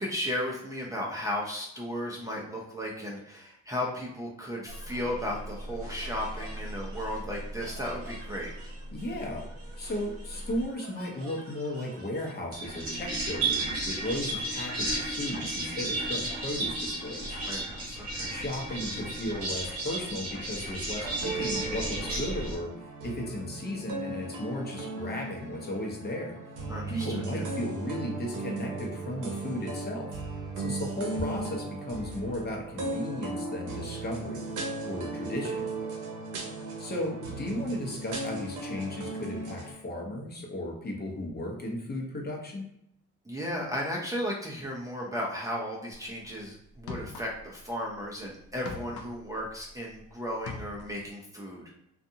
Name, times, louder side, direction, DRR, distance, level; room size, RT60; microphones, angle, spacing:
voice 1, 0.0-8.5 17.5-18.3 26.7-27.5 43.3-51.6, equal, 10° right, -3 dB, 0.6 m, -35 dB
sound 1, 4.7-22.6, right 2 dB, 50° right, 1.0 m, -35 dB
voice 2, 8.9-9.5 9.8-17.4 18.3-26.4 26.9-30.1 30.6-34.4 34.8-35.7 36.8-42.6, left 1 dB, 35° left, -1 dB, 0.8 m, -35 dB
sound 2, 21.0-39.7, right 2 dB, 80° right, 0.7 m, -37 dB
sound 3, 46.1-46.2 46.7-47.6 47.9-50.0 50.3-51.1, left 4 dB, 75° left, 0.6 m, -42 dB
2.5 x 2.4 x 2.7 m, 0.76 s
cardioid pair, 90°, 30 cm